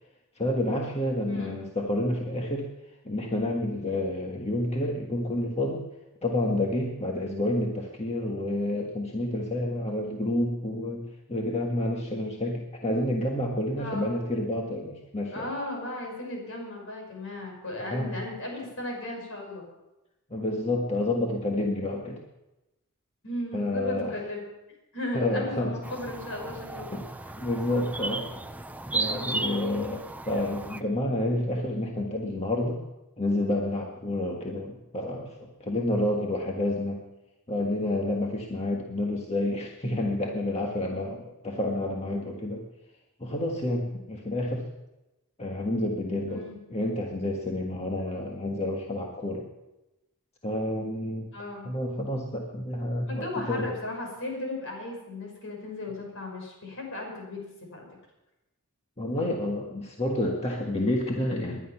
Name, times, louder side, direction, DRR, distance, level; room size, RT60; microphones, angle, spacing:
voice 1, 0.3-2.6 3.0-5.8 6.2-11.0 11.3-15.5 17.9-18.1 20.3-22.2 23.5-24.2 25.1-25.7 26.9-27.1 27.4-28.4 28.9-32.8 33.2-37.0 37.5-42.6 43.2-44.6 45.4-46.4 46.7-49.5 50.4-51.3 51.6-53.6 59.0-61.6, left 1 dB, 30° left, 0 dB, 1.6 m, -29 dB
voice 2, 1.3-1.6 13.8-14.1 15.3-19.7 23.2-24.4 24.9-26.9 46.3-46.6 51.3-51.7 53.1-57.4 57.7-57.9, left 1 dB, 60° left, 1 dB, 5.7 m, -36 dB
sound 1, 25.8-30.8, right 3 dB, 5° right, 0.6 m, -35 dB
20.0 x 11.0 x 5.8 m, 0.98 s
head